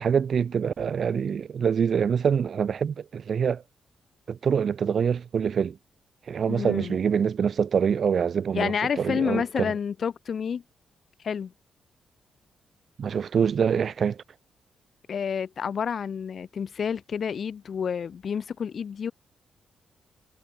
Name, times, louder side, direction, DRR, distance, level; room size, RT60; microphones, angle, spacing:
voice 1, 0.0-3.6 4.3-5.8 6.3-9.7 13.0-14.2, right 7 dB, 50° right, 0.4 m, -25 dB
voice 2, 6.5-7.0 8.5-10.6 11.2-11.5 15.1-19.1, left 7 dB, 50° left, 0.5 m, -29 dB
wide cardioid pair, 140°, 0 cm